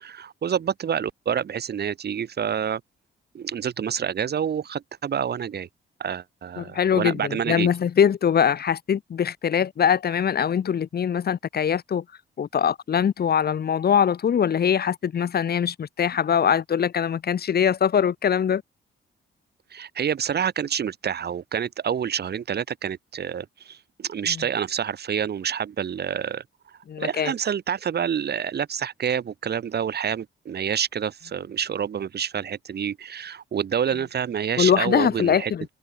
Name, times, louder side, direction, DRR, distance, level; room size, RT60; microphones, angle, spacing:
voice 1, 0.0-2.8 3.3-5.7 6.0-7.7 19.7-26.4 27.0-35.5, right 8 dB, 50° right, 6.8 m, -28 dB
voice 2, 6.6-12.0 12.4-18.6 26.9-27.3 34.6-35.7, left 8 dB, 50° left, 3.1 m, -22 dB
cardioid pair, 145°, 21 cm